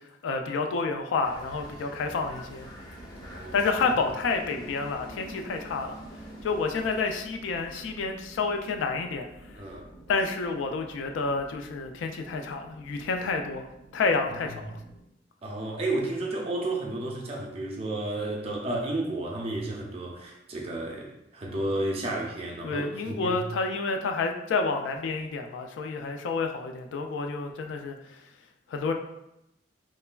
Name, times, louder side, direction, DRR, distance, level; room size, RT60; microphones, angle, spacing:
voice 1, 0.2-2.7 3.5-6.0 6.4-9.3 10.1-13.7 13.9-14.8 22.6-28.0 28.7-28.9, left 4 dB, 80° left, 4 dB, 0.3 m, -29 dB
sound 1, 1.2-7.0, equal, 20° left, 0.6 m, -46 dB
sound 2, 2.1-15.0, right 1 dB, 55° left, 0.8 m, -50 dB
voice 2, 3.1-3.6 9.5-9.9 14.4-14.7 15.4-23.4, right 2 dB, 30° right, -1 dB, 0.4 m, -32 dB
3.1 x 2.2 x 2.2 m, 0.86 s
head